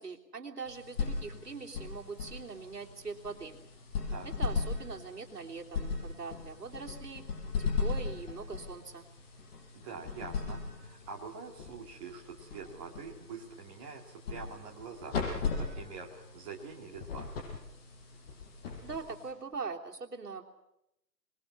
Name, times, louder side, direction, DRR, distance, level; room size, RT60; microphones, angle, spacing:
voice 1, 0.0-3.6 4.2-7.2 7.6-9.1 18.8-20.5, right 4 dB, 70° right, 1 dB, 3.5 m, -42 dB
sound 1, 0.7-19.5, left 5 dB, 35° left, 6.4 m, -38 dB
voice 2, 9.7-15.2 15.5-17.3, right 5 dB, 20° right, 1 dB, 2.1 m, -45 dB
26.0 x 20.5 x 8.6 m, 0.85 s
figure-of-eight pair, 135°, 50 cm